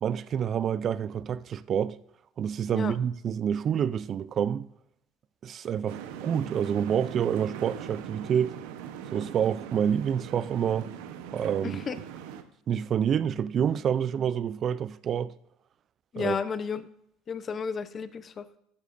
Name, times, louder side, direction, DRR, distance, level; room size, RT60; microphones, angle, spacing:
voice 1, 0.0-2.0 2.4-4.7 5.4-8.6 9.1-10.9 11.3-11.8 12.7-15.3 16.2-16.4, right 8 dB, 45° right, 0.4 m, -28 dB
sound 1, 5.9-12.4, right 9 dB, 80° right, 0.9 m, -41 dB
voice 2, 11.6-12.0 16.1-16.9 17.3-18.5, left 6 dB, 35° left, 0.7 m, -32 dB
13.0 x 10.5 x 2.6 m
supercardioid pair, 95°, 0 cm